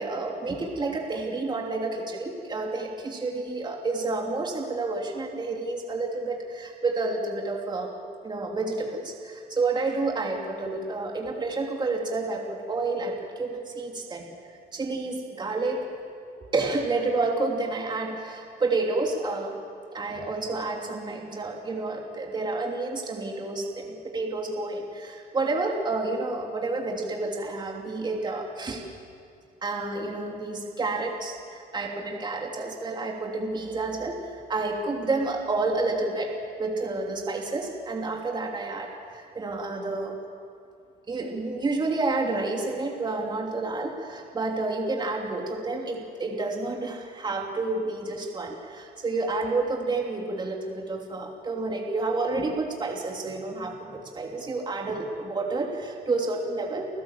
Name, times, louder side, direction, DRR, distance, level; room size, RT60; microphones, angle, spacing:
voice 1, 0.0-7.9 8.2-14.3 14.7-15.8 16.4-19.6 19.9-28.8 29.6-40.2 41.1-56.9, right 3 dB, 25° right, 0 dB, 3.1 m, -30 dB
29.0 x 15.5 x 7.5 m, 2.5 s
cardioid pair, 110°, 17 cm